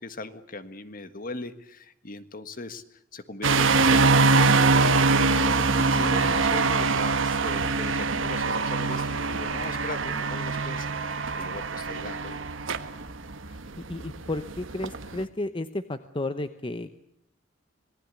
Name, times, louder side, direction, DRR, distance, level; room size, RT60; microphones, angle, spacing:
voice 1, 0.0-12.4, left 2 dB, 45° left, 11 dB, 1.6 m, -39 dB
sound 1, 3.4-15.2, right 3 dB, 75° right, 1.3 m, -23 dB
voice 2, 13.8-16.9, left 2 dB, 25° left, 10 dB, 0.9 m, -33 dB
26.5 x 19.0 x 8.4 m, 0.74 s
head